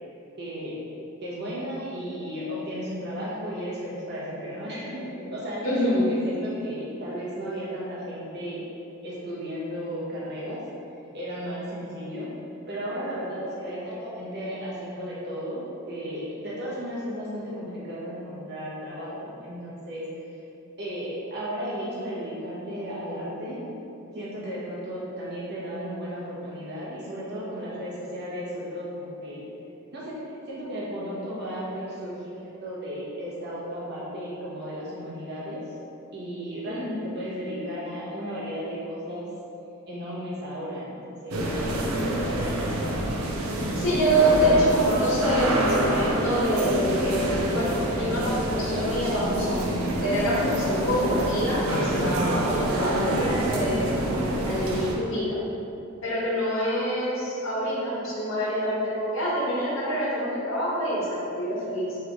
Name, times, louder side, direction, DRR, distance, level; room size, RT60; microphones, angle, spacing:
voice 1, 0.4-0.8 1.2-8.6 9.0-10.6 11.1-12.3 12.7-20.0 20.3-20.4 20.8-23.6 24.1-29.4 29.9-35.6 36.1-39.3 39.9-42.7, equal, 55° right, -7 dB, 1.0 m, -34 dB
voice 2, 5.6-6.1 36.7-36.9 43.7-49.6 50.0-54.0 54.3-55.4 56.0-62.0, equal, 70° left, -7 dB, 1.2 m, -26 dB
sound 1, 41.3-55.0, right 1 dB, 90° right, 0.6 m, -27 dB
3.5 x 3.3 x 3.8 m, 2.8 s
head